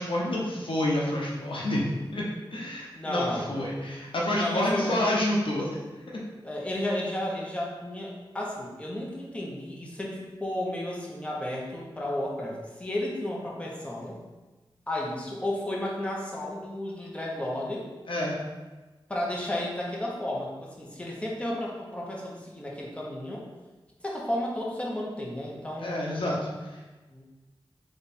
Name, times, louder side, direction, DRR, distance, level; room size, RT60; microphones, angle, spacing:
voice 1, 0.0-5.9 18.1-18.4 25.8-26.4, left 1 dB, 75° left, -3 dB, 0.8 m, -28 dB
voice 2, 2.9-3.8 4.4-5.0 6.4-14.2 14.9-17.9 19.1-20.5 20.8-23.4 24.0-26.3 27.1-27.2, left 1 dB, 15° left, -3 dB, 1.0 m, -33 dB
3.5 x 3.3 x 4.2 m, 1.2 s
wide cardioid pair, 60°, 9 cm